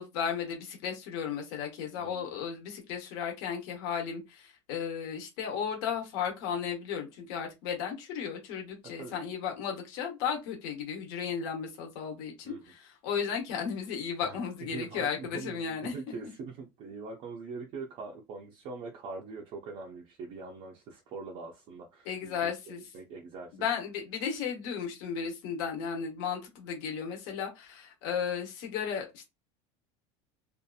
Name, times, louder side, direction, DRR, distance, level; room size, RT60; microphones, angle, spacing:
voice 1, 0.0-16.1 22.0-22.8 23.5-29.3, left 7 dB, 65° left, 1.0 m, -34 dB
voice 2, 2.0-2.3 9.0-9.2 12.4-12.6 14.2-23.7, right 4 dB, 35° right, 0.5 m, -43 dB
2.7 x 2.4 x 2.3 m
cardioid pair, 180°, 14 cm